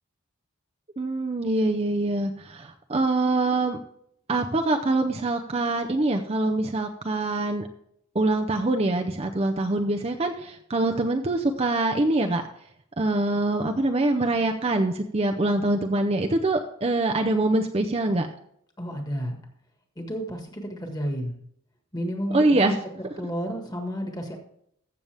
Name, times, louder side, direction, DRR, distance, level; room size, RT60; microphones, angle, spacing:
voice 1, 1.0-3.8 4.3-7.7 8.1-12.4 13.0-18.3 22.3-22.7, right 2 dB, 30° right, 4 dB, 0.6 m, -24 dB
voice 2, 18.8-19.4 19.9-21.3 21.9-22.8 23.2-24.4, equal, 20° left, 3 dB, 1.7 m, -31 dB
14.5 x 7.0 x 3.4 m, 0.69 s
head